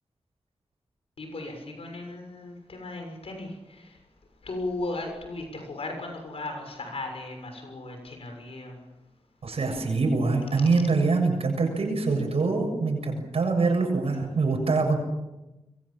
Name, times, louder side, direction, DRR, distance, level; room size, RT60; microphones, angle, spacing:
voice 1, 1.2-3.9 4.4-8.8, left 2 dB, 70° left, 4 dB, 6.6 m, -36 dB
voice 2, 9.4-15.0, right 3 dB, 75° right, 2 dB, 7.1 m, -24 dB
28.5 x 23.0 x 7.3 m, 0.99 s
wide cardioid pair, 125°, 10 cm